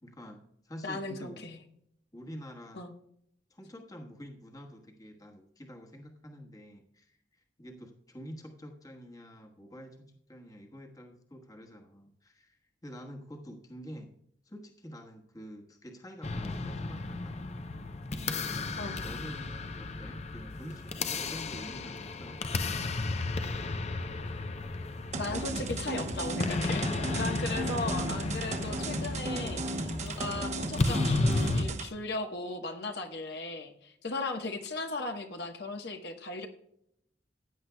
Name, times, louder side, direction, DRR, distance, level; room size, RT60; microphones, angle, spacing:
voice 1, 0.0-1.5 2.1-2.8 3.5-7.2 7.6-14.1 14.4-17.4 18.1-18.6 19.0-23.2 27.5-27.7, equal, 20° left, 2 dB, 1.2 m, -47 dB
voice 2, 0.8-1.6 2.7-2.9 18.8-19.0 25.2-26.9 27.1-36.5, left 2 dB, 65° left, 4 dB, 1.1 m, -37 dB
sound 1, 16.2-31.6, left 3 dB, 35° left, 0.6 m, -34 dB
sound 2, 25.1-31.9, right 2 dB, 40° right, 0.9 m, -35 dB
16.0 x 9.6 x 2.2 m, 0.72 s
head